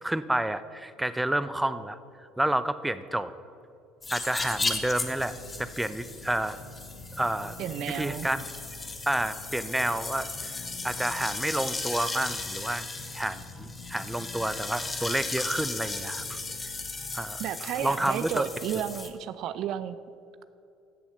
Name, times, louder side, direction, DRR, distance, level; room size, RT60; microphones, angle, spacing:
voice 1, 0.0-2.0 2.4-3.3 4.1-6.6 7.2-7.6 7.9-8.4 9.1-12.9 13.1-16.4 17.1-17.4 17.8-18.4, right 1 dB, 10° right, 13 dB, 0.7 m, -30 dB
sound 1, 4.0-19.1, left 3 dB, 25° left, 1.6 m, -36 dB
sound 2, 4.4-17.3, left 5 dB, 70° left, 1.1 m, -48 dB
voice 2, 7.6-8.3 17.4-20.0, right 10 dB, 60° right, 13 dB, 0.5 m, -32 dB
15.5 x 7.1 x 6.6 m, 2.6 s
hypercardioid pair, 60°, 0 cm